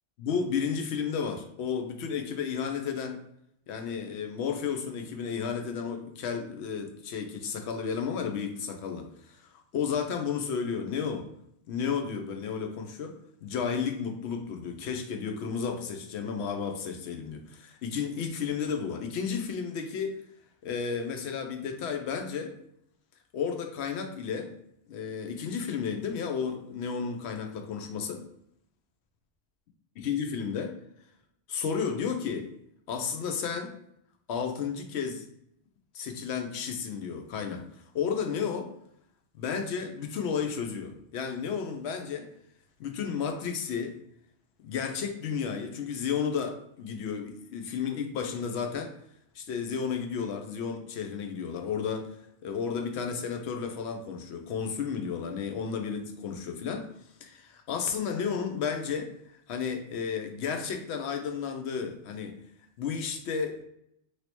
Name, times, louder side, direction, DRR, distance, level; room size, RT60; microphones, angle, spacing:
voice 1, 0.2-3.2 3.7-9.4 9.7-11.3 11.7-20.2 20.6-22.5 23.3-24.5 24.9-28.2 30.0-30.7 31.5-32.5 32.9-33.7 34.3-35.3 35.9-37.6 37.9-38.7 39.3-42.3 42.8-43.9 44.6-48.9 49.3-52.2 52.4-56.9 57.2-59.1 59.5-62.4 62.8-63.6, left 6 dB, 70° left, 6 dB, 0.8 m, -32 dB
3.1 x 2.8 x 2.9 m, 0.75 s
omnidirectional pair, 1.2 m